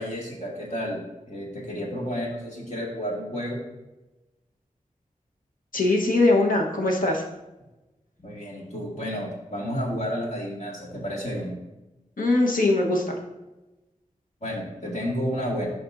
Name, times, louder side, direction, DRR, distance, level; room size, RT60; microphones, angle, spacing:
voice 1, 0.0-3.6 8.2-11.5 14.4-15.7, equal, 55° left, -4 dB, 2.1 m, -31 dB
voice 2, 5.7-7.2 12.2-13.2, left 2 dB, 80° left, -1 dB, 1.2 m, -21 dB
9.8 x 5.2 x 2.7 m, 1.0 s
wide cardioid pair, 75°, 14 cm